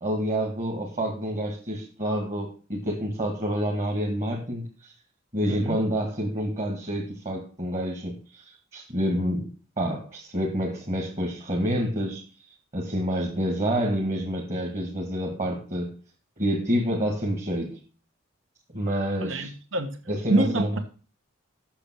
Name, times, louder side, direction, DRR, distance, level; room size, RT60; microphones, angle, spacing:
voice 1, 0.0-4.9 5.3-8.4 8.7-9.5 9.8-12.2 12.7-15.9 16.4-17.8 18.7-19.5 20.1-20.8, equal, 35° right, 2.2 m, -28 dB
voice 2, 5.5-5.8 19.2-20.0 20.3-20.8, right 2 dB, 70° right, 1.2 m, -26 dB
8.7 x 6.9 x 6.3 m
head